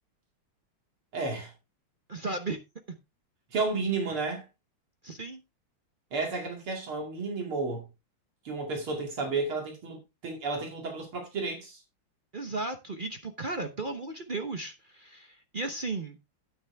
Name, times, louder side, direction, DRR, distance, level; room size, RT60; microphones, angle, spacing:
voice 1, 1.1-1.5 3.5-4.4 6.1-7.9 8.4-11.8, right 3 dB, 75° right, 3.4 m, -32 dB
voice 2, 2.1-2.6 2.9-3.0 5.0-5.4 12.3-16.2, right 3 dB, 55° right, 0.5 m, -35 dB
9.6 x 9.4 x 3.4 m
omnidirectional pair, 2.4 m